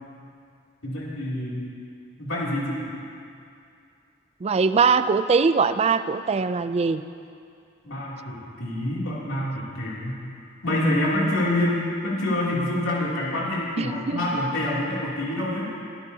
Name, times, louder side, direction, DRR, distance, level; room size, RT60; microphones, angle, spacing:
voice 1, 0.8-1.6 2.2-2.9 7.8-10.2 10.6-15.7, left 1 dB, 80° left, -6 dB, 2.9 m, -26 dB
voice 2, 4.4-7.0 13.8-14.2, right 5 dB, 30° right, 12 dB, 0.4 m, -21 dB
23.5 x 12.0 x 2.8 m, 2.4 s
head